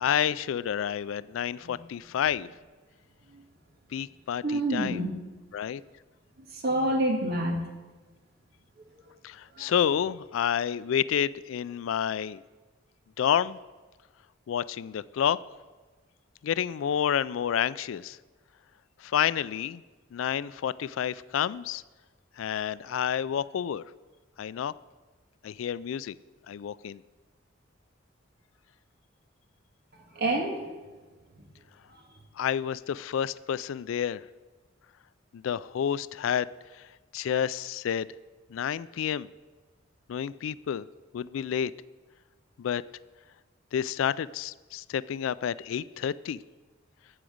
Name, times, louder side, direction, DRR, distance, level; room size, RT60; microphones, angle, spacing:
voice 1, 0.0-2.5 3.9-5.0 5.5-5.8 9.2-12.4 13.2-13.6 14.5-15.4 16.4-18.2 19.0-19.8 20.1-21.8 22.4-23.8 24.4-24.7 25.4-26.2 26.5-27.0 32.4-34.2 35.3-36.5 37.1-38.1 38.5-39.3 40.1-40.9 41.1-41.7 42.6-42.8 43.7-46.4, left 9 dB, 75° left, 18 dB, 0.3 m, -29 dB
voice 2, 4.4-5.1 6.5-7.6 9.6-9.7 30.2-30.7, right 1 dB, 55° right, 2 dB, 1.7 m, -27 dB
13.5 x 5.0 x 7.8 m, 1.3 s
head